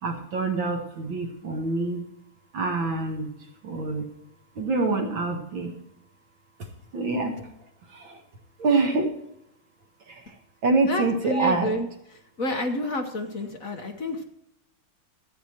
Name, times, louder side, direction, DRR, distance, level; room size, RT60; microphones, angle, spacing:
voice 1, 0.0-2.0 2.5-3.3 3.6-4.1 4.6-5.8 6.9-7.5 7.9-8.2 8.6-9.1 10.1-10.4 10.6-11.7, right 3 dB, 65° right, 4 dB, 2.3 m, -26 dB
voice 2, 10.9-11.9 12.4-14.2, left 1 dB, 45° left, 3 dB, 1.4 m, -29 dB
14.0 x 9.2 x 4.5 m, 0.81 s
omnidirectional pair, 2.3 m